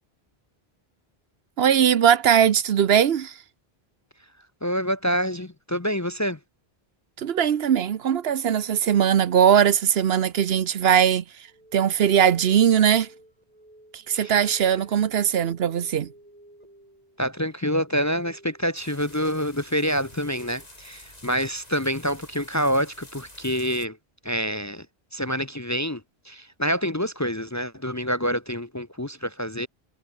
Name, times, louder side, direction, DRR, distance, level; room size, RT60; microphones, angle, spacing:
voice 1, 1.6-3.3 7.2-11.2 11.7-13.1 13.9-16.1, right 8 dB, 70° right, 1.0 m, -20 dB
voice 2, 4.6-6.4 14.1-14.5 17.2-24.0 24.2-24.9 25.1-26.0 26.3-29.7, equal, 20° left, 0.7 m, -27 dB
sound 1, 11.5-20.6, right 1 dB, 40° right, 6.0 m, -53 dB
sound 2, 18.7-23.9, left 1 dB, 40° left, 5.1 m, -48 dB
omnidirectional pair, 1.1 m